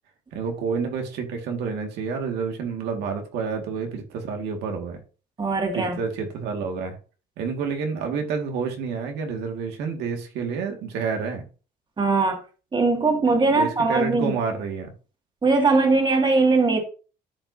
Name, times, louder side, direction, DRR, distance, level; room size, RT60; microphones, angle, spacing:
voice 1, 0.3-5.0 5.7-7.0 7.4-11.5 13.3-14.9, right 5 dB, 85° right, 1.9 m, -29 dB
voice 2, 5.4-6.0 12.0-12.4 12.7-14.3 15.4-16.8, right 3 dB, 25° right, 2.1 m, -20 dB
12.5 x 4.9 x 2.7 m
cardioid pair, 110°, 17 cm